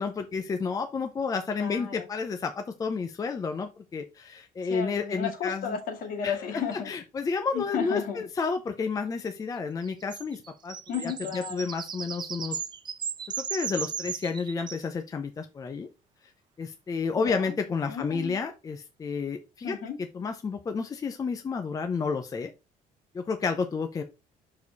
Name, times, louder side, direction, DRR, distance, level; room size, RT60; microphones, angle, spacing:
voice 1, 0.0-5.8 6.2-12.6 13.4-15.9 16.6-19.8 20.1-22.5 23.1-24.0, left 5 dB, 20° left, 6 dB, 0.6 m, -31 dB
voice 2, 1.6-2.1 4.7-6.9 7.5-8.2 10.9-11.7 17.2-17.5 17.9-18.4 19.6-20.0, left 7 dB, 65° left, 5 dB, 2.1 m, -33 dB
sound 1, 9.8-14.9, right 7 dB, 30° right, 0.5 m, -36 dB
6.3 x 4.8 x 4.1 m, 0.27 s
cardioid pair, 155°, 16 cm